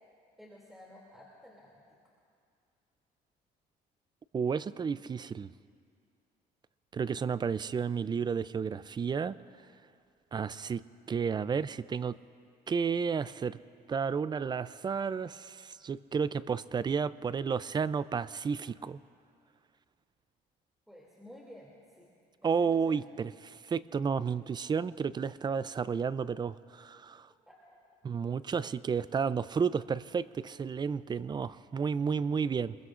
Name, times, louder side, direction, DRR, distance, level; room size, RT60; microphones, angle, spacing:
voice 1, 0.4-2.0 20.9-22.1 22.4-23.1 27.5-27.8, left 1 dB, ahead, -4 dB, 2.7 m, -53 dB
voice 2, 4.3-5.5 6.9-9.4 10.3-12.2 12.7-13.6 13.9-19.0 22.4-27.3 28.0-32.8, right 6 dB, 25° right, 16 dB, 0.4 m, -32 dB
26.5 x 21.5 x 2.5 m, 2.3 s
cardioid pair, 110°, 17 cm